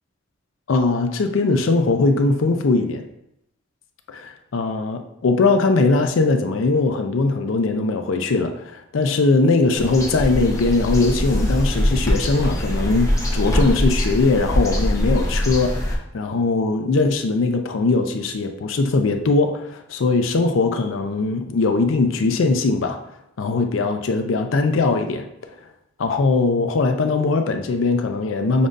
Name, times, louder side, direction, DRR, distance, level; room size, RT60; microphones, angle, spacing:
voice 1, 0.7-3.0 4.1-23.0 23.4-25.3 26.0-28.7, left 3 dB, 90° left, 6 dB, 0.5 m, -20 dB
sound 1, 9.7-16.0, equal, 15° left, 0.7 m, -22 dB
6.9 x 2.5 x 2.6 m, 0.80 s
head